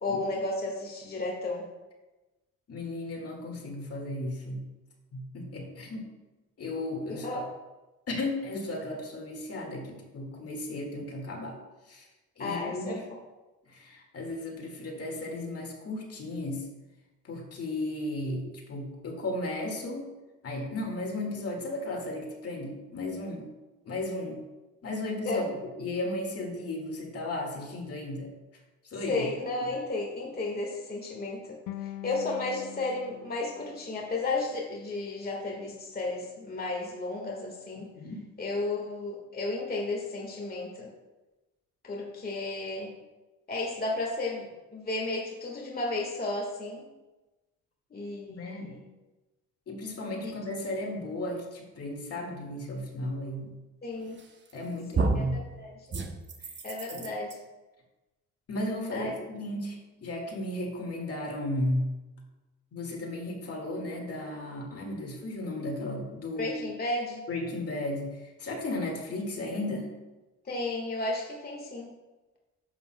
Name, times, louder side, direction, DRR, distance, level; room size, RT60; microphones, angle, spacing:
voice 1, 0.0-1.6 7.1-7.4 12.4-13.0 25.3-25.5 29.1-37.9 38.4-40.9 41.8-42.9 43.5-46.9 47.9-48.8 50.2-50.3 53.8-54.2 54.9-55.7 56.6-57.4 58.9-59.1 66.4-67.2 70.5-71.9, left 2 dB, 30° left, -1 dB, 1.6 m, -33 dB
voice 2, 2.7-4.7 5.1-6.1 6.6-7.4 8.1-11.6 11.9-12.1 12.4-12.9 13.7-16.7 17.2-20.0 20.4-23.5 23.8-24.4 24.8-28.3 28.8-29.3 38.0-38.2 48.3-48.8 49.7-53.5 54.5-55.4 56.9-57.1 58.5-61.9 62.7-66.6 67.3-69.9, left 1 dB, 50° left, 1 dB, 2.0 m, -35 dB
sound 1, 31.7-34.8, left 14 dB, 90° left, 0.6 m, -44 dB
sound 2, 54.2-54.6 54.9-55.4 55.9-57.3, right 3 dB, 40° right, 1.0 m, -30 dB
11.0 x 7.8 x 2.2 m, 1.1 s
cardioid pair, 90°, 30 cm